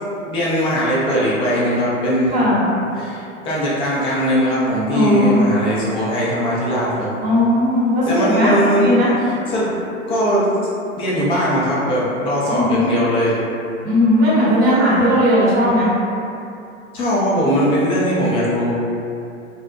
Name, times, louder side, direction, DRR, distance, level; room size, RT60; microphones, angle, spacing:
voice 1, 0.3-2.5 2.9-7.1 8.1-8.9 9.2-9.7 10.1-10.5 11.0-13.4 16.9-18.7, equal, 15° left, -7 dB, 0.3 m, -19 dB
voice 2, 2.3-2.6 4.9-5.5 7.2-9.1 12.5-12.9 13.8-15.9, left 1 dB, 25° right, -11 dB, 0.9 m, -17 dB
2.5 x 2.0 x 2.5 m, 2.6 s
hypercardioid pair, 105°, 39 cm